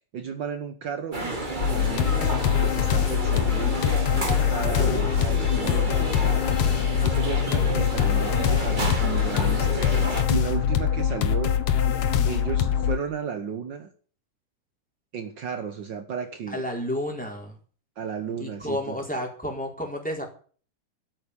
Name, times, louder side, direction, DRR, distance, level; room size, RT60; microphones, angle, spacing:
voice 1, 0.1-2.3 2.6-4.0 4.5-6.4 7.0-10.0 10.3-11.6 12.2-13.9 15.1-16.6 18.0-19.0, right 7 dB, 75° right, 8 dB, 1.0 m, -34 dB
sound 1, 1.1-10.2, right 1 dB, 15° right, 2.2 m, -31 dB
sound 2, 1.6-13.0, left 9 dB, 65° left, 2.3 m, -23 dB
voice 2, 4.6-5.7 7.0-7.2 16.5-17.6 18.4-20.2, left 1 dB, ahead, 1 dB, 4.0 m, -32 dB
13.0 x 8.8 x 8.4 m, 0.43 s
omnidirectional pair, 3.8 m